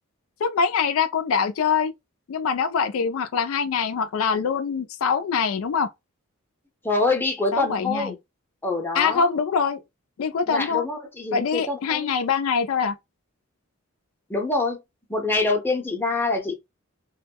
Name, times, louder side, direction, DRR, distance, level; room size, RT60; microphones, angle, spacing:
voice 1, 0.4-1.9 2.3-5.9 7.5-8.1 8.9-9.8 10.2-10.8 11.3-12.9, left 6 dB, 75° left, 0.4 m, -24 dB
voice 2, 6.8-8.2 8.6-9.4 10.5-12.1 14.3-14.8 15.1-16.5, left 3 dB, 10° left, 0.7 m, -25 dB
2.2 x 2.0 x 3.4 m
head